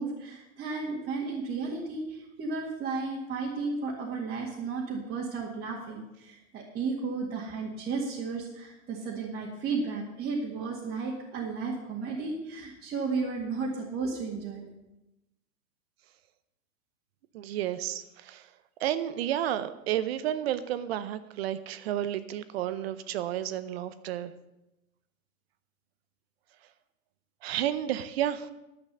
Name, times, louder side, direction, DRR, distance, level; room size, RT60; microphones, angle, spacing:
voice 1, 0.0-14.7, right 4 dB, 20° right, -5 dB, 1.9 m, -33 dB
voice 2, 17.3-18.5 18.8-24.3 27.4-28.5, right 11 dB, 45° right, 13 dB, 0.7 m, -31 dB
10.5 x 8.1 x 6.7 m, 0.93 s
hypercardioid pair, 140°, 43 cm